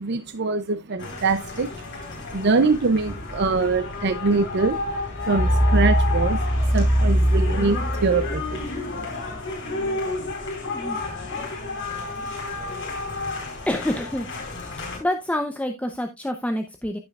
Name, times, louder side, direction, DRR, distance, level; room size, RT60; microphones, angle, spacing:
voice 1, 0.0-1.7 2.3-4.8 5.3-6.4 6.7-8.4, right 3 dB, 50° right, 0.6 m, -23 dB
sound 1, 1.0-15.0, left 1 dB, 60° left, 4.4 m, -26 dB
voice 2, 13.7-14.3 15.0-17.0, left 1 dB, 5° left, 0.7 m, -27 dB
15.5 x 5.5 x 2.4 m
head